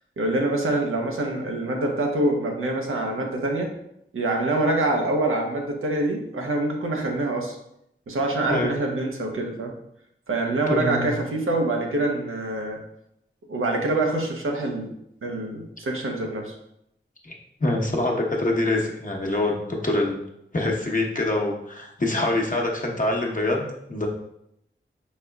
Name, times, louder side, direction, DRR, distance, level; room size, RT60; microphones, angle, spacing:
voice 1, 0.2-3.7 4.1-7.6 8.1-9.7 10.3-12.8 13.5-14.9 15.2-16.6, right 2 dB, 90° right, 1 dB, 0.8 m, -25 dB
voice 2, 10.7-11.1 17.2-17.3 17.6-20.2 20.5-24.1, left 2 dB, 40° left, 0 dB, 1.0 m, -25 dB
5.1 x 4.2 x 2.3 m, 0.77 s
cardioid pair, 40°, 21 cm